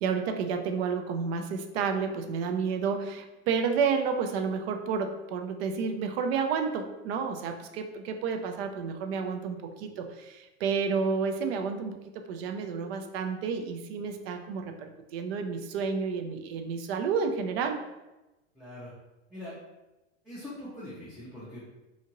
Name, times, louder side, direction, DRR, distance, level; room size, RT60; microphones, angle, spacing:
voice 1, 0.0-17.8, right 5 dB, 60° right, 5 dB, 0.5 m, -30 dB
voice 2, 18.5-18.9 19.3-19.6 20.2-21.6, left 1 dB, ahead, -11 dB, 0.5 m, -42 dB
2.8 x 2.5 x 2.8 m, 1.0 s
supercardioid pair, 130°, 35 cm